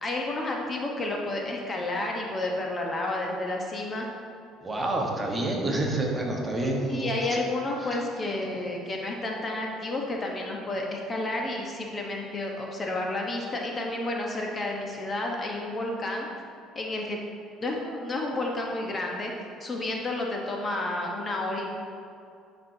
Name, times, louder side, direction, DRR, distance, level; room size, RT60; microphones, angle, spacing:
voice 1, 0.0-4.1 6.9-16.3 16.7-17.2 17.6-19.3 19.6-21.7, left 2 dB, 35° left, 0 dB, 0.9 m, -31 dB
voice 2, 4.6-7.4 7.8-8.0, right 2 dB, 25° right, -1 dB, 1.2 m, -28 dB
9.9 x 4.4 x 2.7 m, 2.4 s
supercardioid pair, 80°, 0 cm